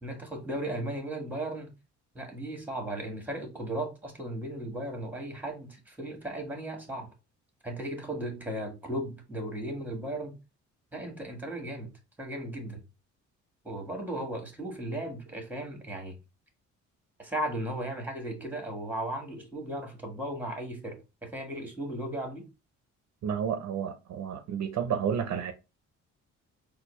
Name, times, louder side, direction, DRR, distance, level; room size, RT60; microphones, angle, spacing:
voice 1, 0.0-1.7 2.1-7.1 7.6-10.4 10.9-11.9 12.2-12.8 13.6-16.2 17.2-22.5, right 1 dB, 5° right, 1.4 m, -36 dB
voice 2, 23.2-25.5, right 7 dB, 65° right, 0.6 m, -31 dB
4.2 x 2.3 x 3.1 m
cardioid pair, 90°, 30 cm